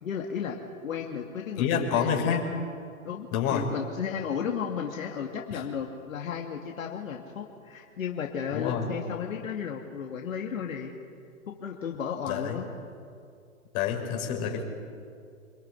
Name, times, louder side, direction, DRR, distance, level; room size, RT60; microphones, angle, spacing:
voice 1, 0.0-2.3 3.0-10.9 11.5-12.7, left 7 dB, 65° left, 1 dB, 2.7 m, -34 dB
voice 2, 1.6-2.4 3.3-3.7 5.5-5.6 8.5-8.9 12.3-12.6 13.7-14.6, left 8 dB, 35° left, 2 dB, 5.8 m, -27 dB
27.0 x 21.5 x 9.9 m, 2.3 s
hypercardioid pair, 130°, 42 cm